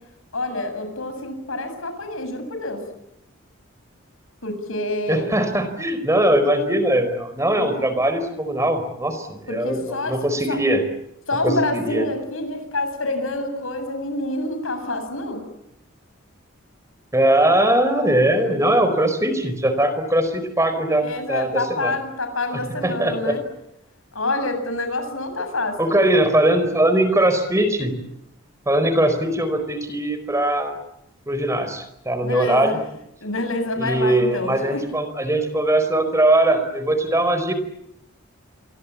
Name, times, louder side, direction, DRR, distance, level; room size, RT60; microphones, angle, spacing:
voice 1, 0.3-2.8 4.4-5.3 7.6-7.9 9.5-10.6 11.3-15.4 21.0-23.4 24.1-25.8 32.2-32.8 33.2-34.8, left 2 dB, 75° left, 8 dB, 7.7 m, -27 dB
voice 2, 5.1-10.8 11.4-12.0 17.1-22.0 22.5-23.4 25.8-27.9 28.7-30.8 31.3-32.8 33.8-37.5, right 1 dB, 15° right, 9 dB, 4.6 m, -20 dB
28.5 x 24.0 x 8.6 m, 0.81 s
head